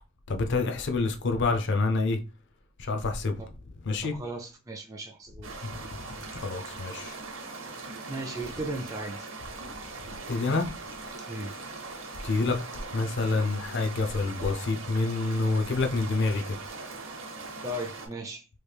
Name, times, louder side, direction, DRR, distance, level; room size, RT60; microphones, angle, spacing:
voice 1, 0.3-2.2 2.8-3.3 3.9-4.1 5.7-5.8 6.3-7.2 10.3-10.7 12.2-12.6 12.9-16.6, left 3 dB, 60° left, 0.5 m, -27 dB
voice 2, 4.0-5.7 8.1-9.3 11.3-11.6 17.6-18.5, right 1 dB, 15° right, 0.4 m, -37 dB
sound 1, 5.4-18.1, right 3 dB, 70° right, 0.8 m, -41 dB
3.1 x 2.3 x 3.3 m
head